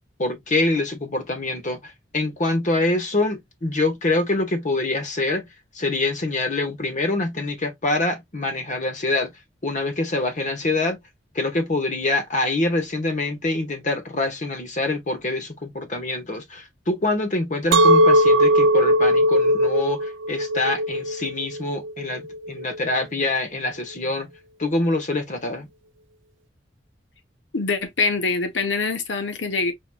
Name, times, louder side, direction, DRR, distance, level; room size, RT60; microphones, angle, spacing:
voice 1, 0.2-5.5 5.7-9.3 9.6-11.0 11.3-24.3 24.6-25.7, left 2 dB, 45° left, 1.2 m, -25 dB
Chink clink, 17.7-22.9, equal, 80° right, 0.4 m, -19 dB
voice 2, 27.5-29.7, left 4 dB, 70° left, 1.0 m, -24 dB
4.7 x 3.1 x 2.3 m
head